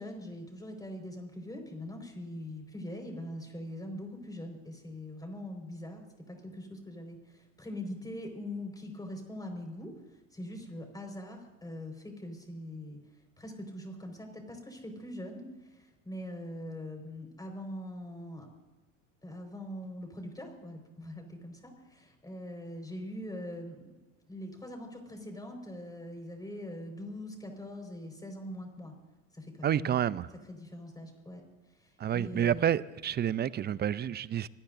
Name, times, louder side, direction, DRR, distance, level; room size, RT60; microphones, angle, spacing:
voice 1, 0.0-18.5 19.2-24.0 24.3-28.9 29.3-30.1 30.5-31.4 31.7-32.8, left 1 dB, 10° left, 4.9 m, -42 dB
voice 2, 29.6-30.3 32.0-34.5, right 10 dB, 25° right, 0.6 m, -29 dB
25.5 x 19.0 x 2.7 m
hypercardioid pair, 80°, 40 cm